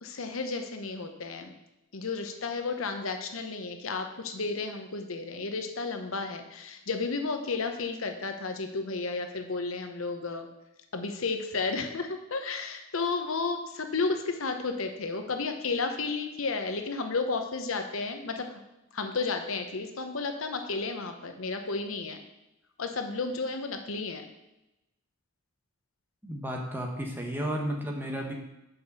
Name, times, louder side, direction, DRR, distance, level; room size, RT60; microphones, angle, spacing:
voice 1, 0.0-1.5 1.9-10.5 10.9-18.5 18.9-22.2 22.8-24.2, left 4 dB, 80° left, 6 dB, 0.9 m, -32 dB
voice 2, 26.2-28.3, equal, 10° right, 1 dB, 1.3 m, -33 dB
6.9 x 5.2 x 6.9 m, 0.94 s
head